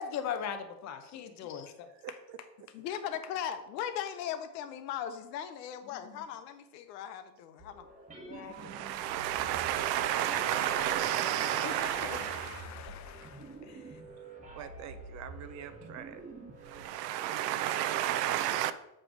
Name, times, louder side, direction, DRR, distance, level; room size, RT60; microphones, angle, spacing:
voice 1, 0.0-2.2 2.8-2.9 6.0-6.3 8.3-8.9 9.6-13.8, left 8 dB, 35° left, 0.8 m, -42 dB
voice 2, 1.9-2.4 10.3-11.1 13.7-13.9 14.5-16.3 16.7-18.2, right 8 dB, 40° right, 0.5 m, -46 dB
voice 3, 2.7-7.9 10.2-10.4, left 9 dB, 85° left, 1.0 m, -38 dB
sound 1, 7.6-16.8, right 2 dB, 15° right, 1.1 m, -48 dB
voice 4, 8.5-12.7 16.7-18.7, right 12 dB, 85° right, 0.7 m, -31 dB
7.6 x 3.2 x 6.1 m
supercardioid pair, 140°, 48 cm